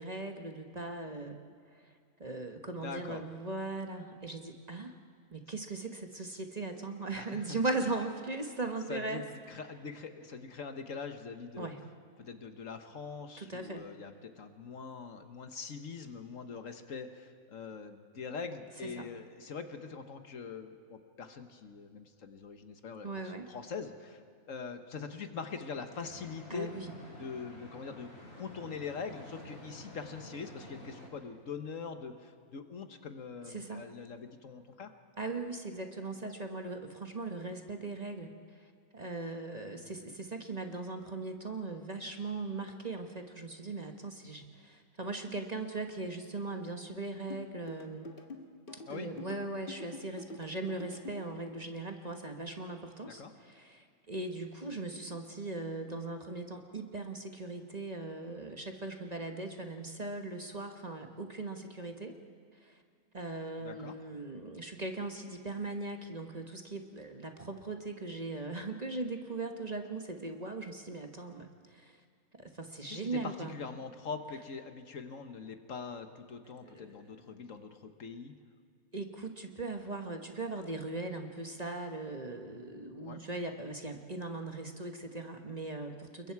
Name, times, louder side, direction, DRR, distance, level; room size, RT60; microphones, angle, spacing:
voice 1, 0.0-1.4 1.7-1.9 2.2-5.0 5.3-9.2 11.6-11.8 13.4-13.9 19.0-19.1 23.0-23.5 26.5-26.9 33.5-33.9 35.2-38.7 38.9-48.1 48.9-62.2 62.6-62.8 63.1-72.0 72.3-73.6 76.6-77.1 78.9-86.3, right 2 dB, 30° right, 4 dB, 1.3 m, -39 dB
voice 2, 2.8-3.2 7.2-7.6 8.9-11.7 12.2-23.1 23.5-24.2 24.5-26.7 27.1-28.1 28.4-34.9 48.8-49.1 53.1-53.3 63.6-63.9 72.9-78.4 83.0-83.2, left 5 dB, 65° left, 8 dB, 1.5 m, -43 dB
sound 1, 25.9-31.1, left 1 dB, 85° left, 5.4 m, -50 dB
sound 2, 47.3-51.3, left 2 dB, 40° left, 1.8 m, -46 dB
29.0 x 22.0 x 4.7 m, 2.1 s
omnidirectional pair, 1.5 m